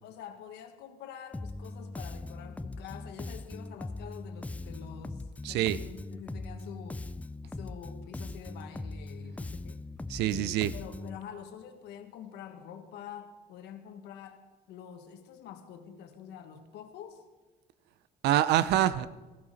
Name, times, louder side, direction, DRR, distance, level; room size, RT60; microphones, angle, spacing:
voice 1, 0.0-7.1 7.5-9.8 10.2-14.4 14.7-17.3, left 8 dB, 80° left, 6 dB, 1.5 m, -46 dB
Bass guitar, 1.3-11.2, left 2 dB, 10° left, 0.4 m, -40 dB
voice 2, 5.4-5.8 10.1-10.7 18.2-19.1, right 13 dB, 80° right, 16 dB, 0.6 m, -25 dB
15.5 x 15.0 x 4.1 m, 1.3 s
cardioid pair, 110°, 17 cm